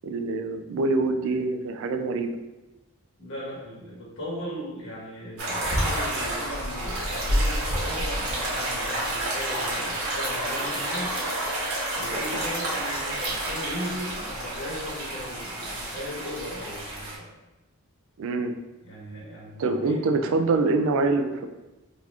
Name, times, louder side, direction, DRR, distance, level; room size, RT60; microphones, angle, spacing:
voice 1, 0.0-2.4 18.2-18.5 19.6-21.5, right 3 dB, 65° right, 6 dB, 0.3 m, -25 dB
voice 2, 3.2-11.5 12.0-17.3 18.8-20.4, equal, 65° left, -5 dB, 1.3 m, -37 dB
sound 1, 5.4-17.2, right 1 dB, 85° right, 1.2 m, -29 dB
3.9 x 2.9 x 2.4 m, 1.0 s
head